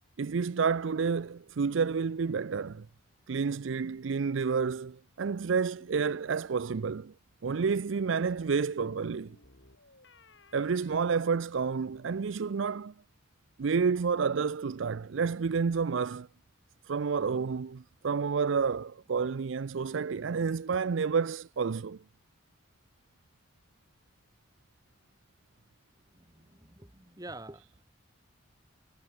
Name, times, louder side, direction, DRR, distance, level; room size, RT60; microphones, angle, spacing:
voice 1, 0.2-2.9 3.3-7.1 7.4-9.4 10.5-12.9 13.6-16.3 16.9-22.0, right 5 dB, 70° right, 0.5 m, -30 dB
sound 1, 5.8-6.3 8.2-12.0, left 2 dB, 65° left, 5.4 m, -59 dB
voice 2, 26.1-27.8, right 2 dB, 20° right, 2.1 m, -47 dB
head